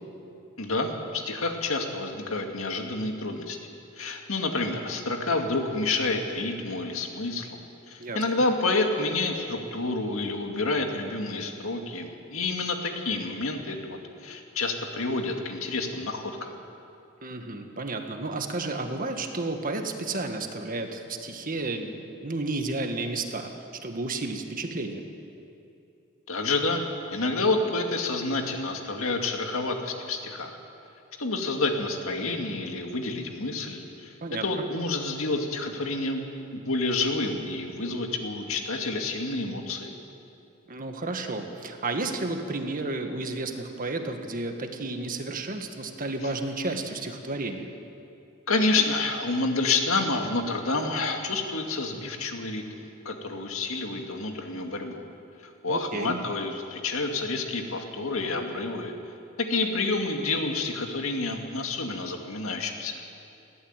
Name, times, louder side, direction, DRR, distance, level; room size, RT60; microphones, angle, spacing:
voice 1, 0.6-3.6 4.0-16.5 26.3-26.8 27.1-30.6 31.2-34.1 34.4-36.2 36.5-40.0 48.5-55.0 55.6-58.9 59.4-62.9, left 3 dB, 70° left, 3 dB, 2.2 m, -29 dB
voice 2, 8.0-8.4 17.2-23.5 23.8-25.0 34.2-34.6 40.7-47.7 55.7-56.2, right 2 dB, 40° right, 5 dB, 1.6 m, -32 dB
20.5 x 15.0 x 9.0 m, 2.7 s
head